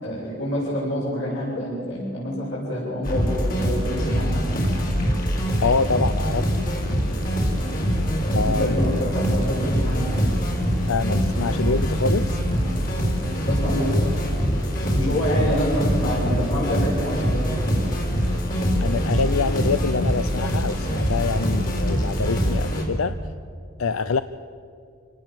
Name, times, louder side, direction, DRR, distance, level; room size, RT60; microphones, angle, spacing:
voice 1, 0.0-4.4 8.2-10.2 13.4-14.2 14.8-17.5, equal, 60° left, -8 dB, 7.3 m, -27 dB
sound 1, 3.0-22.8, equal, 40° left, 4.6 m, -23 dB
voice 2, 5.6-6.5 8.4-8.8 10.9-12.4 15.0-15.5 18.8-23.2 23.8-24.2, left 4 dB, 90° left, 12 dB, 0.6 m, -25 dB
28.0 x 18.5 x 7.6 m, 2.3 s
head